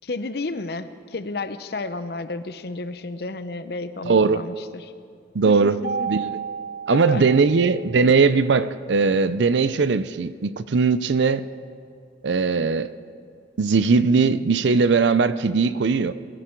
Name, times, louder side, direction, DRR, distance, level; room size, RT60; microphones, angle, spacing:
voice 1, 0.0-4.9 5.5-6.1 6.9-7.2 7.6-7.7, left 3 dB, 55° left, 11 dB, 0.7 m, -32 dB
voice 2, 4.1-4.4 5.3-5.8 6.1-6.4 6.9-11.5 12.2-12.9 13.6-16.1, right 4 dB, 75° right, 14 dB, 0.5 m, -19 dB
Mallet percussion, 5.8-8.1, right 6 dB, 55° right, 1.1 m, -32 dB
21.0 x 14.0 x 4.5 m, 2.2 s
head